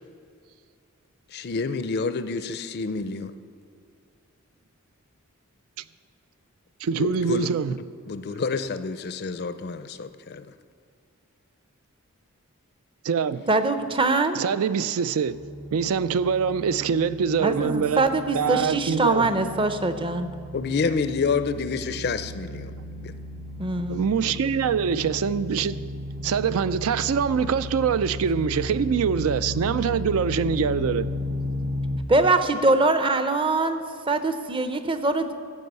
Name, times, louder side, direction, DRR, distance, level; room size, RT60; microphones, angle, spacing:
voice 1, 1.3-3.3 7.0-7.5 8.1-10.5 20.5-22.7 23.0-23.1, left 4 dB, 45° left, 0.5 m, -28 dB
voice 2, 6.8-7.8 13.0-13.5 14.4-15.4 15.7-18.0 18.3-19.3 23.9-25.8 26.2-31.1, right 6 dB, 70° right, 0.4 m, -24 dB
voice 3, 13.5-14.4 17.4-20.3 23.6-24.1 32.1-33.8 34.1-35.3, right 2 dB, 25° right, 0.6 m, -23 dB
sound 1, 15.3-32.0, left 1 dB, 90° right, 1.2 m, -35 dB
14.0 x 5.4 x 8.0 m
head